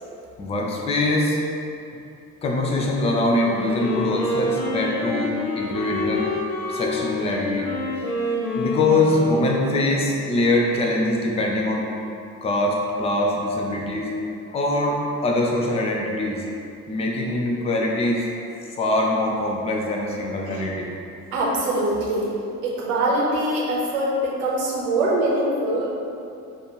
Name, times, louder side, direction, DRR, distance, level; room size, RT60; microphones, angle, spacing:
voice 1, 0.4-1.4 2.4-6.3 6.7-7.7 8.5-11.9 12.4-14.1 14.5-16.4 16.9-20.9, left 2 dB, 15° left, -1 dB, 0.5 m, -23 dB
Wind instrument woodwind instrument, 3.3-10.1, left 1 dB, 65° left, 1.0 m, -28 dB
voice 2, 21.3-22.3 22.6-25.9, right 1 dB, 60° right, -4 dB, 1.1 m, -23 dB
6.4 x 2.5 x 2.9 m, 2.6 s
figure-of-eight pair, 55°, 45 cm